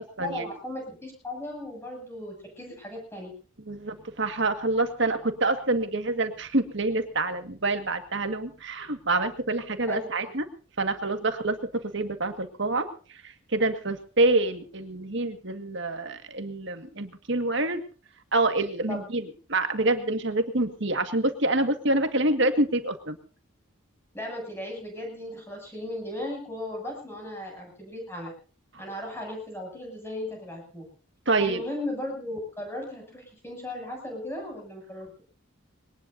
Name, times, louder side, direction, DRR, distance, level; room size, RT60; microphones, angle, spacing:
voice 1, 0.2-3.3 9.9-10.3 18.9-19.1 24.1-28.3 28.8-30.8 31.4-35.2, left 1 dB, 10° left, 1 dB, 7.9 m, -36 dB
voice 2, 3.7-10.5 10.8-17.8 18.3-23.2 31.3-31.6, right 2 dB, 60° right, 8 dB, 1.9 m, -27 dB
22.0 x 19.0 x 2.8 m, 0.38 s
head